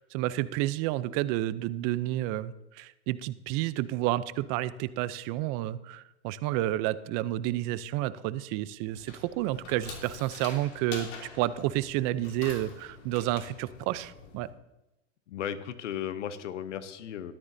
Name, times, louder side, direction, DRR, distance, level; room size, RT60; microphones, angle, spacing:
voice 1, 0.0-11.1 11.3-14.5, right 15 dB, 50° right, 16 dB, 0.6 m, -30 dB
sound 1, 8.9-14.5, left 5 dB, 65° left, 3.0 m, -46 dB
voice 2, 15.3-17.3, left 9 dB, 90° left, 13 dB, 0.9 m, -35 dB
13.5 x 12.5 x 2.7 m, 0.95 s
hypercardioid pair, 110°, 35 cm